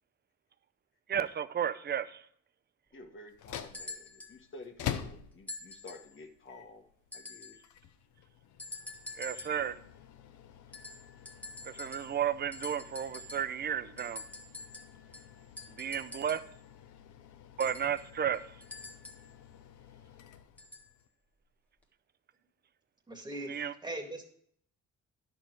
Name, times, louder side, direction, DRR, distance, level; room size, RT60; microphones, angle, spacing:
voice 1, 1.1-2.2 9.2-9.8 11.6-14.2 15.7-16.4 17.6-18.5 23.5-23.7, right 8 dB, 35° right, 0.6 m, -33 dB
voice 2, 2.9-6.8 7.1-7.6, left 2 dB, 40° left, 1.5 m, -51 dB
sound 1, 3.3-21.1, left 10 dB, 80° left, 0.8 m, -47 dB
sound 2, 3.7-4.4 5.5-6.1 7.1-7.7 8.6-9.7 10.7-12.3 12.5-13.6 14.0-16.6 17.6-19.3 20.6-20.9 21.8-21.9, left 2 dB, 5° left, 1.5 m, -46 dB
voice 3, 23.1-24.3, right 1 dB, 15° right, 2.0 m, -40 dB
10.5 x 6.7 x 4.7 m
cardioid pair, 90°, 30 cm